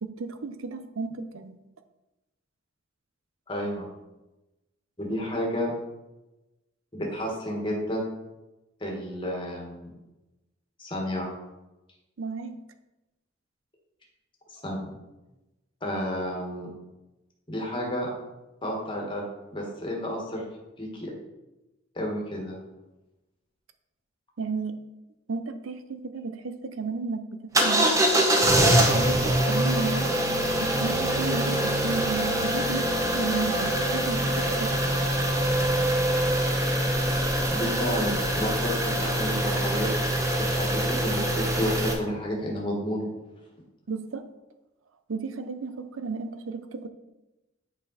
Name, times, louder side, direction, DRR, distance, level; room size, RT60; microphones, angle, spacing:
voice 1, 0.0-1.5 12.2-12.6 24.4-24.8 25.3-30.1 30.6-34.8 43.9-44.3 45.1-46.9, right 4 dB, 90° right, 10 dB, 0.6 m, -33 dB
voice 2, 3.5-3.9 5.0-5.7 6.9-8.1 8.8-9.9 10.8-11.3 14.5-14.9 15.8-16.7 17.5-18.1 18.6-20.4 20.8-21.1 21.9-22.6 37.5-39.9 40.3-43.1, equal, 25° left, -1 dB, 1.5 m, -31 dB
sound 1, 27.5-41.9, right 1 dB, 15° right, 0.8 m, -24 dB
7.4 x 5.1 x 4.1 m, 1.0 s
head